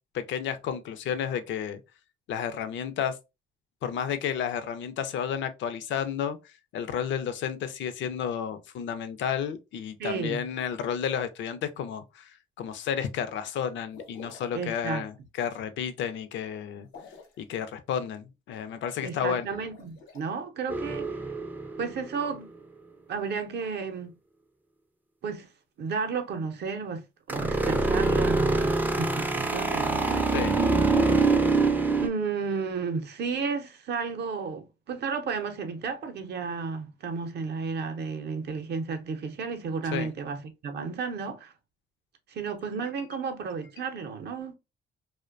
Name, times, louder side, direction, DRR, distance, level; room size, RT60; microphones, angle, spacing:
voice 1, 0.1-1.8 2.3-3.2 3.8-6.4 6.7-16.9 17.4-19.5 30.3-30.5 39.9-40.1, left 8 dB, 70° left, 0.4 m, -31 dB
voice 2, 10.0-10.5 14.5-15.0 19.0-21.2 21.8-22.5 23.1-24.1 25.2-25.5 25.8-30.5 32.0-41.5 42.3-44.5, right 5 dB, 60° right, 0.6 m, -33 dB
sound 1, 13.9-14.6 16.8-17.4 19.6-20.2, left 4 dB, 90° left, 0.8 m, -47 dB
sound 2, 20.7-22.3 27.3-32.1, right 3 dB, 10° right, 0.3 m, -25 dB
2.4 x 2.1 x 2.4 m
cardioid pair, 90°, 20 cm